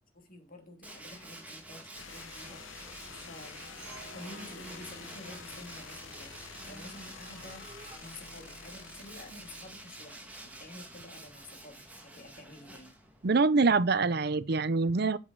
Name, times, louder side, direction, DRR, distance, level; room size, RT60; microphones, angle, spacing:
voice 1, 0.1-3.7 4.1-12.9, left 2 dB, 45° left, 2.7 m, -50 dB
Tools, 0.8-13.3, right 2 dB, 5° right, 1.9 m, -49 dB
sound 1, 1.9-10.7, left 6 dB, 70° left, 0.9 m, -49 dB
sound 2, 2.8-8.0, right 2 dB, 25° right, 3.7 m, -52 dB
voice 2, 13.2-15.2, right 4 dB, 50° right, 0.6 m, -25 dB
8.0 x 7.7 x 3.9 m
head